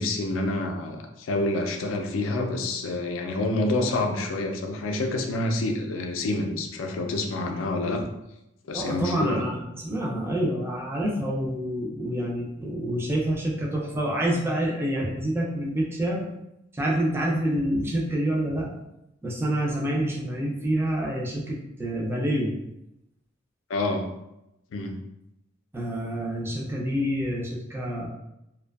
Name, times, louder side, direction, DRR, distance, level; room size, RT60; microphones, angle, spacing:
voice 1, 0.0-8.0 8.7-9.4 23.7-24.1 24.7-25.0, left 2 dB, 75° left, 4 dB, 0.4 m, -27 dB
voice 2, 8.7-16.3 16.7-18.7 19.2-22.5 25.7-28.1, right 1 dB, 10° right, -3 dB, 0.3 m, -27 dB
2.6 x 2.2 x 2.2 m, 0.86 s
head